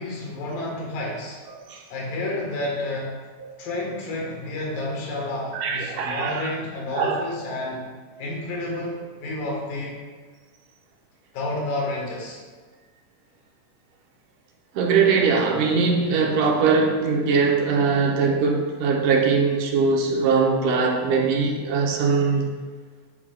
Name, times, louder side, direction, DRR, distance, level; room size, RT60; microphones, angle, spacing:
voice 1, 0.0-1.4 1.9-3.1 3.6-7.9 8.2-10.0 11.3-12.4, left 2 dB, 80° left, -2 dB, 3.2 m, -30 dB
voice 2, 5.5-6.5 6.9-7.2 14.8-22.5, right 5 dB, 75° right, 0 dB, 2.4 m, -21 dB
9.1 x 8.5 x 2.4 m, 1.4 s
omnidirectional pair, 3.8 m